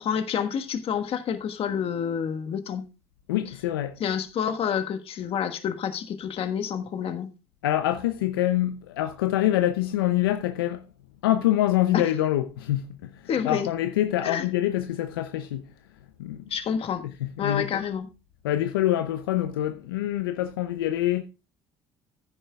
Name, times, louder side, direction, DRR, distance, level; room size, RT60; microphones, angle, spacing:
voice 1, 0.0-2.8 4.0-7.3 11.9-12.0 13.3-13.7 14.2-14.4 16.5-17.0 17.4-18.0, left 8 dB, 55° left, 1.4 m, -28 dB
voice 2, 3.3-4.0 7.6-10.8 11.2-15.6 16.2-16.5 17.2-17.8 18.4-21.2, left 13 dB, 90° left, 0.6 m, -25 dB
14.5 x 10.0 x 2.3 m
hypercardioid pair, 65°, 12 cm